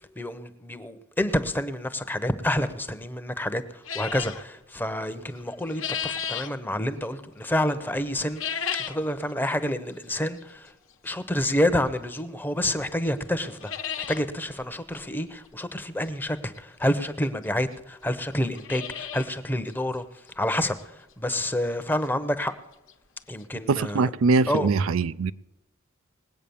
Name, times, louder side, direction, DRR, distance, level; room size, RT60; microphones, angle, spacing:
voice 1, 0.2-8.4 8.9-10.7 11.0-13.7 14.0-20.0 20.4-22.5 23.3-24.1 24.5-24.7, left 1 dB, 10° left, 0.8 m, -28 dB
sound 1, 3.9-4.4 5.4-6.5 8.2-9.1 9.5-9.6 10.4-10.5 12.2-12.3 12.7-12.8 13.1-13.2 13.4-14.2 14.6-14.7 14.9-15.0 16.6-16.7 17.4-17.5 17.7-17.8 18.3-19.3 19.7-19.8 20.3-20.4 20.8-20.9 22.6-22.7 22.9-23.0 23.4-23.5, left 8 dB, 65° left, 1.1 m, -33 dB
voice 2, 23.7-25.3, right 4 dB, 75° right, 0.4 m, -22 dB
20.0 x 8.5 x 7.0 m
head